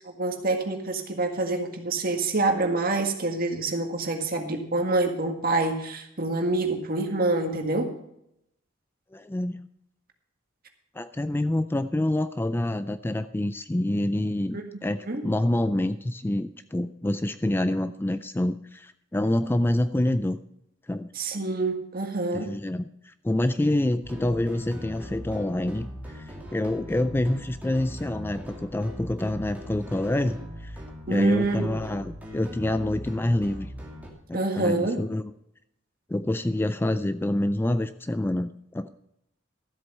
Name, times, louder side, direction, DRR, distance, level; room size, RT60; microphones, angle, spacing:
voice 1, 0.2-7.9 14.5-14.6 15.0-15.2 21.2-22.5 31.1-31.7 34.3-35.0, right 2 dB, 50° right, 4 dB, 1.8 m, -26 dB
voice 2, 9.1-9.6 10.9-20.4 20.9-21.1 22.3-30.8 31.1-33.7 34.3-35.2 36.1-38.9, left 1 dB, 10° left, 12 dB, 0.3 m, -27 dB
sound 1, 24.0-34.1, equal, 10° right, 2.4 m, -40 dB
13.5 x 7.9 x 5.4 m, 0.78 s
head